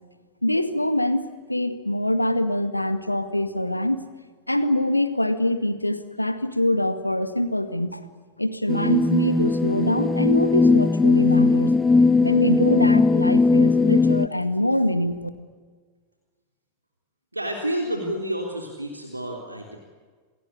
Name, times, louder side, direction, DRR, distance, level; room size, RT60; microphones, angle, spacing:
voice 1, 0.4-4.1 4.5-8.0 8.4-11.7 12.2-15.2, left 1 dB, 85° left, 10 dB, 2.0 m, -24 dB
sound 1, 8.7-14.3, left 4 dB, 10° left, 0.8 m, -19 dB
voice 2, 17.3-19.8, right 1 dB, 85° right, 2 dB, 3.6 m, -29 dB
28.5 x 20.0 x 9.9 m, 1.5 s
figure-of-eight pair, 90°, 0 cm